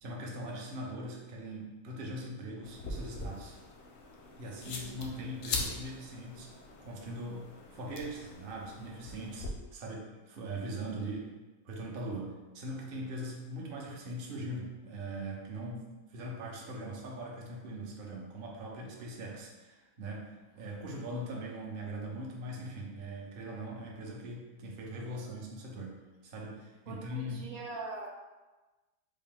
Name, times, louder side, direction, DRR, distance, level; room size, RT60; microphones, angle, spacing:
voice 1, 0.0-3.6 4.4-6.5 6.8-7.4 7.7-11.3 11.6-15.8 16.1-26.0 26.2-27.5, right 1 dB, 55° right, -2 dB, 0.6 m, -41 dB
sound 1, 2.6-9.5, left 3 dB, 65° left, 0.7 m, -42 dB
voice 2, 26.9-28.1, right 3 dB, 75° right, 0 dB, 1.1 m, -43 dB
3.5 x 2.4 x 3.7 m, 1.2 s
omnidirectional pair, 1.6 m